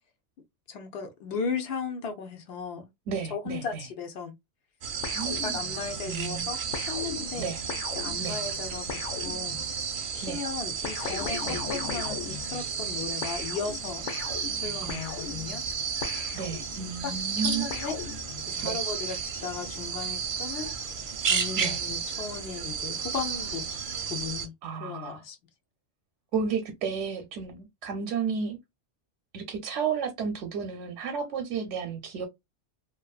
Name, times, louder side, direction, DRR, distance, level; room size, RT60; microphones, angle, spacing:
voice 1, 0.7-2.9 3.3-4.3 5.4-7.5 7.9-9.6 10.1-14.1 14.6-15.6 17.0-18.0 18.5-20.7 21.0-24.5 24.8-25.4, left 5 dB, 65° left, 0.8 m, -36 dB
voice 2, 3.1-3.8 5.1-5.6 6.1-6.5 7.4-7.6 8.2-8.4 10.2-10.4 11.5-11.6 14.8-15.2 16.3-17.7 18.6-18.8 21.6-21.8 24.6-25.2 26.3-28.6 29.3-32.3, right 6 dB, 85° right, 0.9 m, -32 dB
sound 1, 4.8-24.5, right 6 dB, 55° right, 0.6 m, -33 dB
sound 2, 5.0-6.0 6.7-9.9 10.8-12.9 13.2-17.0 17.7-18.7, left 7 dB, 85° left, 1.0 m, -39 dB
2.6 x 2.2 x 2.3 m
omnidirectional pair, 1.2 m